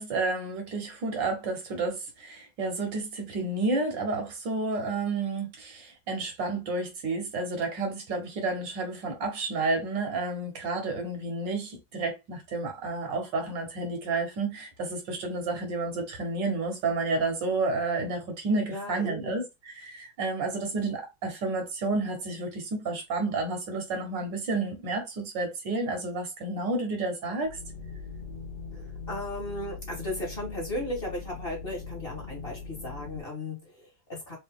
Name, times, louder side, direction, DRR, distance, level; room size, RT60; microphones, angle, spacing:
voice 1, 0.0-27.6, right 3 dB, 70° right, 1.8 m, -30 dB
voice 2, 18.7-19.4 28.7-34.4, left 1 dB, 30° left, 1.6 m, -36 dB
sound 1, 27.4-33.2, left 5 dB, 55° left, 0.6 m, -41 dB
3.8 x 2.8 x 3.5 m
omnidirectional pair, 2.1 m